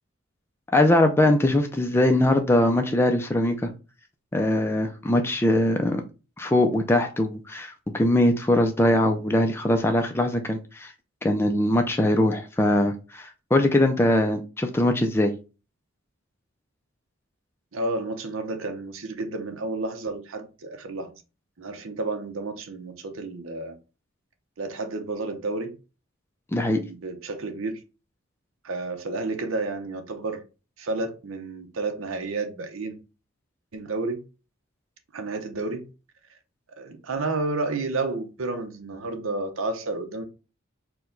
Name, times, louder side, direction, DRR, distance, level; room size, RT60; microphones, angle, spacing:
voice 1, 0.7-3.7 4.3-6.0 6.4-10.9 11.2-15.3 26.5-26.8, left 1 dB, 10° left, 0.4 m, -21 dB
voice 2, 17.7-21.1 21.6-23.8 24.6-25.8 26.8-27.8 28.6-30.4 30.8-33.0 33.7-34.2 35.1-35.9 36.8-40.2, right 3 dB, 75° right, 0.7 m, -31 dB
4.6 x 2.2 x 3.8 m
head